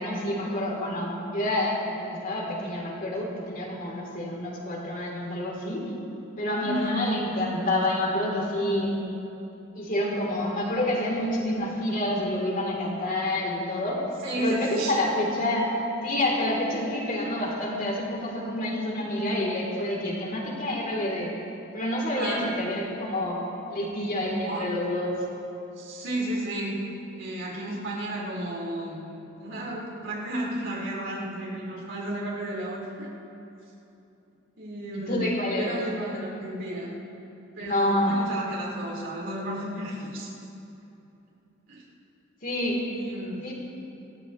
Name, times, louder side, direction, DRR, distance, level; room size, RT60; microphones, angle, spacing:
voice 1, 0.0-5.8 6.4-8.9 9.7-14.0 14.4-15.7 16.0-21.3 21.7-23.4 23.7-25.2 35.1-35.8 37.6-38.2 42.4-42.8 43.4-43.5, left 1 dB, 45° left, -2 dB, 3.3 m, -28 dB
voice 2, 6.6-7.0 14.2-14.9 22.1-22.4 24.4-24.7 25.8-26.8 27.1-33.1 34.6-36.9 37.5-40.3 41.7-41.8 42.9-43.4, right 1 dB, 65° right, -5 dB, 4.6 m, -33 dB
26.0 x 15.0 x 3.2 m, 2.9 s
head